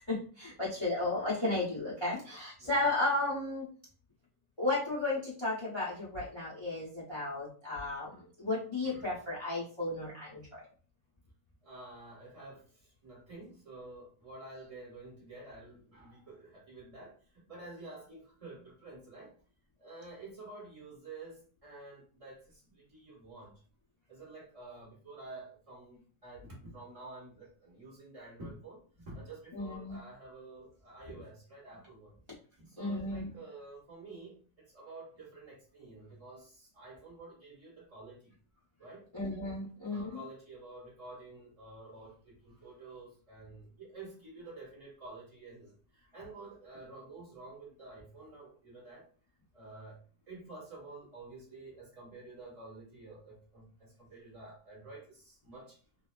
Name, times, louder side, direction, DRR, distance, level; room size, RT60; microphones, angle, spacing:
voice 1, 0.1-3.7 4.6-10.6 29.5-30.0 32.8-33.3 39.1-40.2, left 2 dB, 35° left, -6 dB, 0.4 m, -34 dB
voice 2, 11.6-17.2 17.5-19.3 19.8-23.5 24.1-28.8 29.1-32.1 32.6-38.3 38.8-39.0 39.9-49.0 49.5-50.0 50.3-55.8, right 2 dB, 20° right, -6 dB, 1.2 m, -50 dB
2.7 x 2.3 x 2.3 m, 0.40 s
omnidirectional pair, 1.8 m